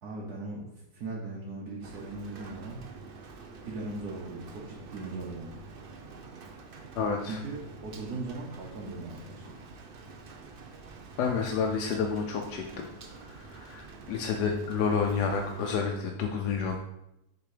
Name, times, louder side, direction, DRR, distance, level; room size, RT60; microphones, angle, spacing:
voice 1, 0.0-0.7 0.9-2.8 3.6-5.6 7.3-9.7, right 2 dB, 75° right, -4 dB, 1.5 m, -39 dB
Rain, 1.8-15.7, right 4 dB, 50° right, 0.7 m, -47 dB
voice 2, 7.0-7.4 11.2-16.8, left 5 dB, 85° left, 2 dB, 1.2 m, -30 dB
6.9 x 3.7 x 4.9 m, 0.85 s
omnidirectional pair, 1.7 m